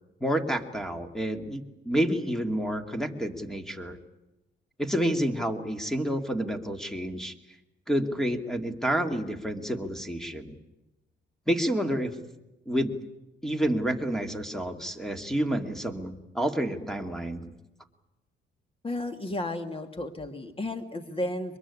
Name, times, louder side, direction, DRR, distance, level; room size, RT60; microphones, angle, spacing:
voice 1, 0.2-4.0 4.8-7.3 7.9-10.6 11.5-12.1 12.7-12.9 13.4-17.5, right 1 dB, ahead, 6 dB, 2.4 m, -29 dB
voice 2, 18.8-21.6, left 1 dB, 30° left, 8 dB, 2.7 m, -33 dB
23.0 x 22.0 x 9.9 m, 0.97 s
cardioid pair, 90°, 20 cm